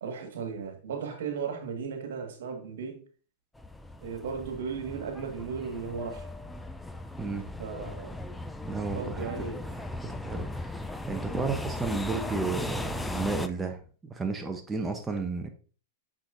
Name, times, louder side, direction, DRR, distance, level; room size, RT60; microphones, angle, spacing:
voice 1, 0.0-3.0 4.0-6.3 7.6-8.2 8.9-9.7, right 6 dB, 75° right, 1.8 m, -36 dB
sound 1, 3.6-13.5, left 2 dB, 5° left, 0.5 m, -37 dB
voice 2, 7.2-7.5 8.6-9.3 10.0-15.5, right 4 dB, 15° right, 0.8 m, -33 dB
6.1 x 6.1 x 2.6 m
hypercardioid pair, 115°, 0 cm